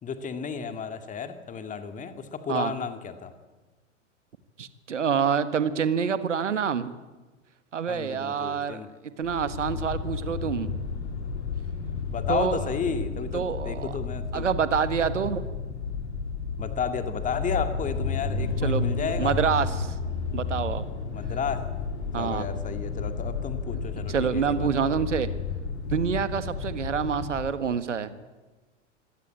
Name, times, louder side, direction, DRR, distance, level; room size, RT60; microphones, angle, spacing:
voice 1, 0.0-3.3 7.9-8.9 12.1-14.5 16.6-19.4 21.1-21.7 22.2-24.9, left 6 dB, 20° left, 9 dB, 2.0 m, -33 dB
voice 2, 4.6-6.9 7.7-8.8 9.2-10.7 12.3-12.6 13.3-13.9 14.3-15.5 18.6-19.9 20.3-20.8 22.1-22.5 24.1-25.3 25.9-28.2, right 7 dB, 70° right, 13 dB, 1.5 m, -27 dB
sound 1, 9.2-27.6, left 4 dB, 60° left, 3.0 m, -32 dB
25.0 x 17.5 x 8.8 m, 1.2 s
figure-of-eight pair, 95°, 37 cm